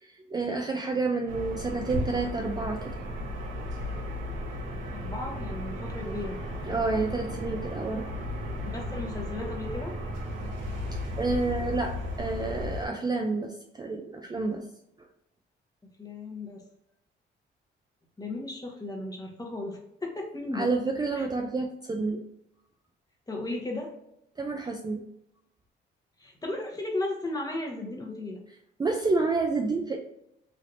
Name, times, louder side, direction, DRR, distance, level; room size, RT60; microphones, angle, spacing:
voice 1, 0.0-2.9 6.7-8.1 11.2-14.6 20.5-22.2 24.4-25.0 28.8-30.0, right 3 dB, 20° right, 2 dB, 0.4 m, -29 dB
sound 1, 1.3-12.9, left 1 dB, 75° right, 1.0 m, -35 dB
voice 2, 4.9-6.4 8.6-10.0 16.0-16.6 18.2-20.7 21.1-21.3 23.3-23.9 26.2-28.4, left 2 dB, 20° left, 0 dB, 0.9 m, -35 dB
3.3 x 2.8 x 2.6 m, 0.80 s
cardioid pair, 90°, 20 cm